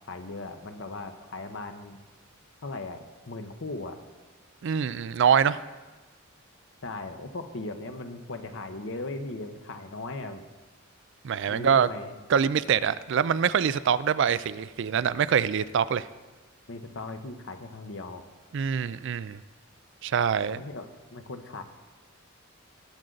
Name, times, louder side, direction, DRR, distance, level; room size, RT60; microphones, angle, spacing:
voice 1, 0.1-2.0 2.6-4.0 6.8-10.5 11.5-12.2 16.7-18.2 20.6-21.6, left 2 dB, 65° left, 8 dB, 0.9 m, -38 dB
voice 2, 4.6-5.6 11.2-11.9 12.3-16.1 18.5-19.4 20.0-20.6, right 7 dB, 60° right, 16 dB, 0.4 m, -24 dB
19.0 x 7.7 x 3.9 m, 1.2 s
head